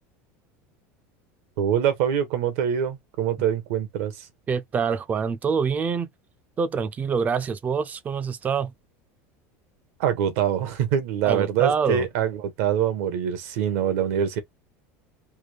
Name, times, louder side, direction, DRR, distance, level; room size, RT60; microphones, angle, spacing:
voice 1, 1.6-4.3 10.0-14.4, right 9 dB, 75° right, 1.0 m, -24 dB
voice 2, 4.5-6.1 6.6-8.7 11.2-12.1, right 6 dB, 20° right, 0.4 m, -25 dB
3.4 x 2.2 x 3.2 m
supercardioid pair, 140°, 7 cm